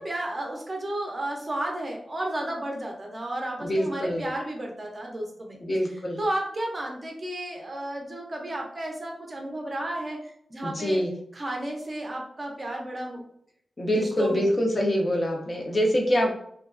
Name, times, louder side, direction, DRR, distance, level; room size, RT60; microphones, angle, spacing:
voice 1, 0.0-5.6 5.9-11.0 11.3-13.2 13.9-14.4, right 1 dB, 30° right, 0 dB, 0.5 m, -33 dB
voice 2, 3.6-4.2 5.6-6.2 10.6-11.1 13.8-16.3, equal, 30° left, 0 dB, 0.5 m, -25 dB
2.9 x 2.2 x 2.4 m, 0.68 s
wide cardioid pair, 160°, 0 cm